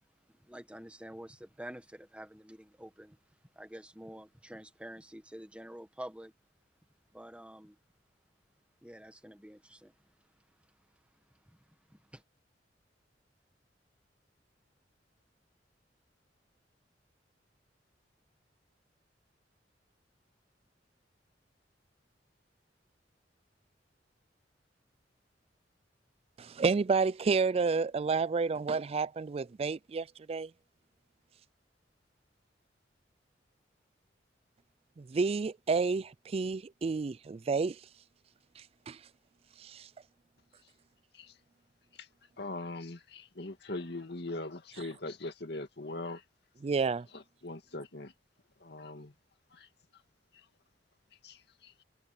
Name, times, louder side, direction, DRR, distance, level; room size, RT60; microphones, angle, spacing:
voice 1, 0.4-3.2 3.5-6.3 7.1-7.7 8.8-9.9 11.5-11.6 11.9-12.2, right 1 dB, 5° right, 1.6 m, -48 dB
voice 2, 26.4-30.5 35.0-37.8 38.6-39.0 39.6-39.9 46.6-47.1, right 4 dB, 35° right, 0.3 m, -30 dB
voice 3, 42.4-46.2 47.1-48.1 48.6-49.1 49.5-49.7 51.2-51.8, left 2 dB, 65° left, 2.2 m, -41 dB
head